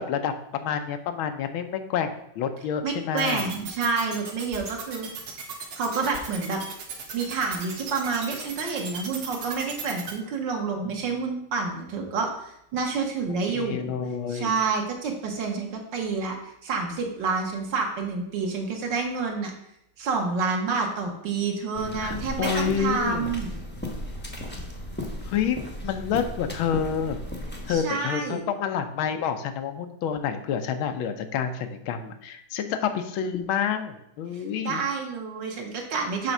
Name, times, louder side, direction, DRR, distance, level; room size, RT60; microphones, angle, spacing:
voice 1, 0.0-3.5 13.5-14.5 22.0-23.3 25.3-25.6 25.8-27.2 27.6-34.8, left 7 dB, 90° left, 8 dB, 1.6 m, -28 dB
voice 2, 2.8-5.1 5.8-6.6 7.1-13.9 14.3-19.5 20.0-23.6 27.7-28.4 34.3-36.3, right 4 dB, 65° right, 2 dB, 1.9 m, -28 dB
sound 1, 3.2-10.1, right 6 dB, 80° right, 2.1 m, -36 dB
sound 2, 21.7-27.8, left 1 dB, 10° left, 0.6 m, -35 dB
6.8 x 4.3 x 6.0 m, 0.77 s
omnidirectional pair, 2.2 m